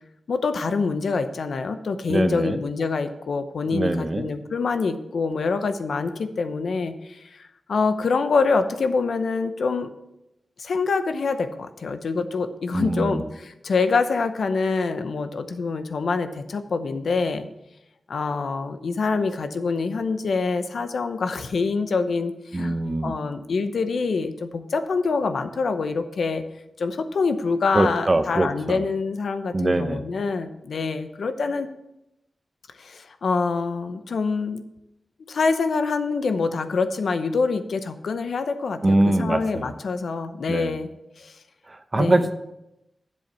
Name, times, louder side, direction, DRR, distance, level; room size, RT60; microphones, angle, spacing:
voice 1, 0.3-7.4 7.7-9.9 10.6-17.5 18.1-22.8 23.0-26.4 26.8-31.7 32.8-34.6 35.3-40.9 41.2-41.4 41.9-42.3, left 4 dB, 80° left, 9 dB, 0.7 m, -25 dB
voice 2, 2.1-2.6 3.7-4.2 12.7-13.2 22.5-23.1 27.7-28.8 29.5-30.0 38.8-39.7 40.5-40.7 41.7-42.3, right 2 dB, 30° right, 9 dB, 0.7 m, -23 dB
7.7 x 7.5 x 5.5 m, 0.88 s
wide cardioid pair, 110°, 0 cm